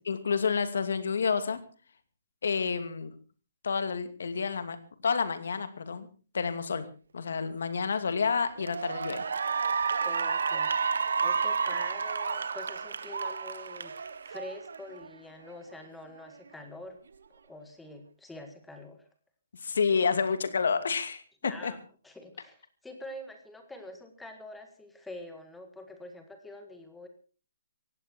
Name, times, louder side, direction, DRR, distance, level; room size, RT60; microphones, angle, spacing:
voice 1, 0.1-1.6 2.4-3.1 3.6-4.8 5.0-6.1 6.3-6.9 7.1-9.2 19.6-21.7, left 5 dB, 70° left, 10 dB, 2.5 m, -29 dB
Cheering / Applause, 7.8-8.1 8.6-15.1, right 5 dB, 80° right, 1.4 m, -31 dB
voice 2, 10.0-10.7 11.2-13.9 14.2-17.0 17.4-19.0 21.4-21.8 22.0-27.1, left 1 dB, 5° left, 6 dB, 1.8 m, -45 dB
18.5 x 16.0 x 4.5 m, 0.37 s
hypercardioid pair, 180°, 0 cm